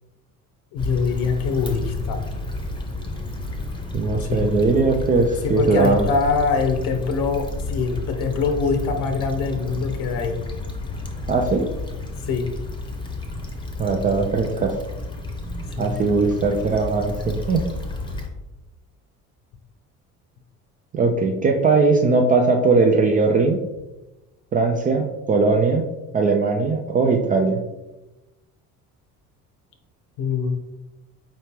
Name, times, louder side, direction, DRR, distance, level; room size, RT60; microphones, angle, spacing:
voice 1, 0.7-2.2 4.2-4.5 5.4-10.4 12.3-12.5 15.8-16.0 30.2-30.5, left 5 dB, 60° left, 6 dB, 0.8 m, -23 dB
Stream / Traffic noise roadway noise / Trickle dribble, 0.8-18.3, left 2 dB, 10° left, 0.7 m, -31 dB
voice 2, 3.9-6.1 11.3-11.7 13.8-14.8 15.8-17.6 20.9-23.6 24.5-25.8 26.1-27.6, right 3 dB, 20° right, 2 dB, 0.3 m, -19 dB
4.8 x 3.1 x 3.0 m, 1.0 s
figure-of-eight pair, 55°, 45 cm